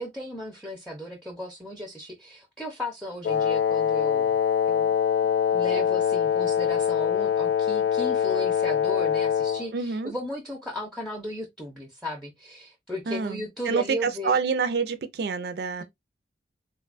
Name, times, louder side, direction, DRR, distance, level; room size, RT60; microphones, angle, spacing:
voice 1, 0.0-4.4 4.7-4.9 5.5-14.4, equal, ahead, 0.5 m, -36 dB
Wind instrument woodwind instrument, 3.2-9.7, left 8 dB, 70° left, 0.3 m, -24 dB
voice 2, 9.7-10.1 13.1-15.8, right 5 dB, 60° right, 0.4 m, -27 dB
3.6 x 2.2 x 2.4 m
head